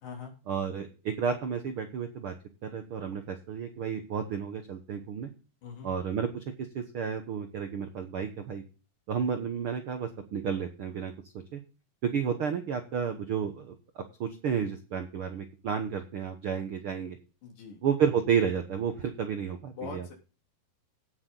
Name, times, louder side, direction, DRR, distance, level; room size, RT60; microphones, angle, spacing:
voice 1, 0.5-2.3 2.6-5.3 5.8-6.4 6.7-8.6 9.1-11.1 11.5-11.6 12.0-17.2 17.8-20.1, right 7 dB, 80° right, 7 dB, 1.2 m, -31 dB
voice 2, 17.4-17.8 19.7-20.1, left 6 dB, 65° left, 1 dB, 4.8 m, -42 dB
16.5 x 6.5 x 3.8 m, 0.34 s
omnidirectional pair, 4.1 m